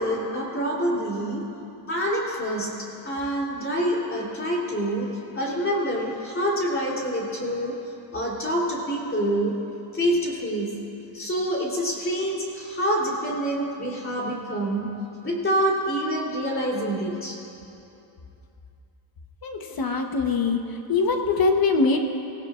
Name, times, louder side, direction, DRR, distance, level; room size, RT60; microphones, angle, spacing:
voice 1, 0.0-1.5 1.9-9.6 9.9-10.8 11.1-14.9 15.2-17.4, equal, 25° left, -3 dB, 3.3 m, -26 dB
voice 2, 19.4-20.6 20.9-22.0, left 4 dB, 45° left, 4 dB, 1.1 m, -22 dB
25.5 x 17.0 x 2.5 m, 2.8 s
cardioid pair, 140°, 48 cm